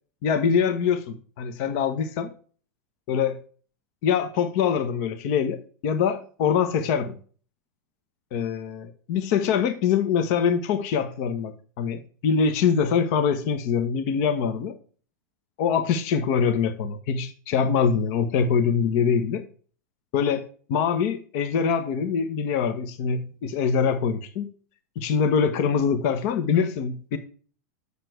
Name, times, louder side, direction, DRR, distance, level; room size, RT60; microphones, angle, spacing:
voice 1, 0.2-2.3 3.1-3.4 4.0-7.2 8.3-14.7 15.6-19.4 20.1-20.4 20.7-24.5 25.0-27.2, left 6 dB, 55° left, 1.2 m, -24 dB
7.5 x 6.8 x 4.5 m
hypercardioid pair, 120°, 9 cm